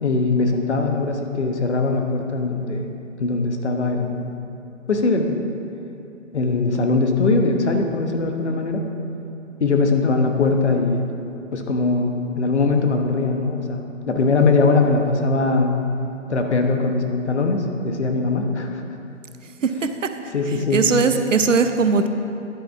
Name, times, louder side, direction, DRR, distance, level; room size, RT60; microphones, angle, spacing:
voice 1, 0.0-2.9 3.2-4.4 4.9-5.4 6.3-8.8 9.6-11.1 11.5-15.8 16.3-18.8 20.3-20.8, left 3 dB, 55° left, 4 dB, 1.1 m, -21 dB
voice 2, 20.5-22.1, right 4 dB, 70° right, 8 dB, 0.7 m, -19 dB
10.5 x 8.5 x 3.6 m, 2.7 s
hypercardioid pair, 170°, 40 cm